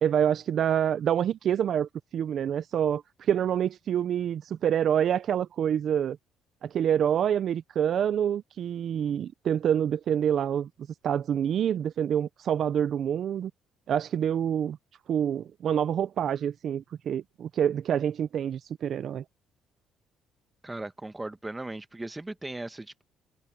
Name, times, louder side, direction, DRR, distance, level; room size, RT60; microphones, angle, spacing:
voice 1, 0.0-6.2 6.6-10.7 11.0-13.5 13.9-14.8 15.1-19.2, right 9 dB, 55° right, 0.5 m, -27 dB
voice 2, 20.6-23.0, right 2 dB, 15° right, 1.1 m, -37 dB
cardioid pair, 105°, 0 cm